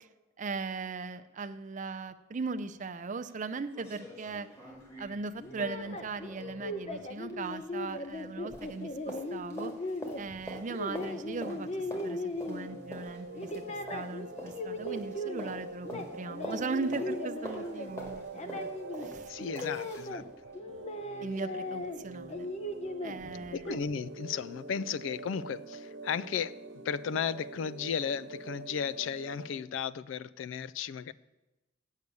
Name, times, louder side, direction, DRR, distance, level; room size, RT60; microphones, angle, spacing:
voice 1, 0.4-4.5 5.0-9.7 10.2-18.7 18.9-19.3 19.6-19.9 21.2-22.5 23.0-23.8, right 4 dB, 40° right, 9 dB, 0.5 m, -39 dB
sound 1, 2.9-3.0 3.3-3.4 3.7-8.3 8.5-20.1 20.5-20.6, equal, 15° left, 2.1 m, -46 dB
sound 2, 5.4-13.0 13.3-15.6 15.8-20.2 20.5-22.0 22.3-23.8, left 1 dB, 35° left, 0.7 m, -38 dB
sound 3, 12.5-29.6, right 3 dB, 75° right, 1.1 m, -45 dB
voice 2, 19.3-20.2 23.5-26.6 26.8-31.1, left 7 dB, 80° left, 18 dB, 0.3 m, -35 dB
8.5 x 6.5 x 8.1 m, 1.0 s
head